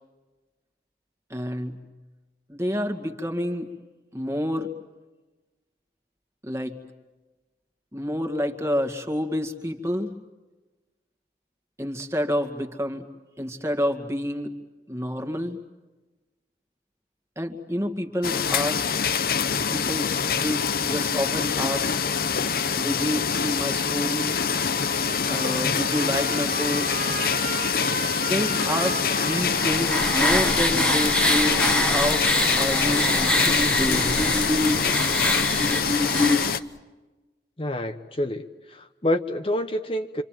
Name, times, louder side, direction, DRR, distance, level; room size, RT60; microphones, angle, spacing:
voice 1, 1.3-1.8 2.5-3.7 4.1-4.7 6.4-6.7 7.9-10.1 11.8-13.0 13.4-14.5 14.9-15.6 17.4-18.8 19.7-22.1 22.8-24.4 25.3-27.1 28.2-32.3 32.5-34.2, equal, 15° right, 6 dB, 2.2 m, -28 dB
sound 1, 18.2-36.6, left 6 dB, 55° left, 0.8 m, -25 dB
Trumpet, 24.8-31.9, right 4 dB, 45° right, 0.9 m, -35 dB
sound 2, 29.0-36.6, left 1 dB, 5° left, 1.4 m, -24 dB
voice 2, 37.6-40.2, left 1 dB, 30° left, 5 dB, 1.0 m, -28 dB
27.5 x 27.5 x 7.6 m, 1.2 s
head